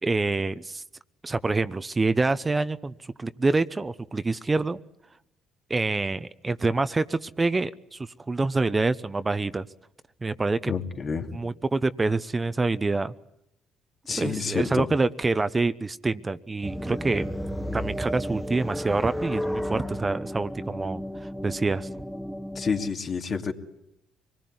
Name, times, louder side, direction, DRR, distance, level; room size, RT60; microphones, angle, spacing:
voice 1, 0.0-0.8 1.2-2.9 3.2-4.8 5.7-9.7 10.2-10.7 11.3-13.1 14.2-17.2 17.7-21.9, right 3 dB, 25° right, 13 dB, 0.9 m, -26 dB
voice 2, 10.7-11.3 14.1-14.9 22.6-23.5, left 5 dB, 45° left, 4 dB, 2.6 m, -28 dB
sound 1, 16.6-22.9, equal, ahead, 1.3 m, -33 dB
25.0 x 20.0 x 9.6 m, 0.83 s
supercardioid pair, 70°, 0 cm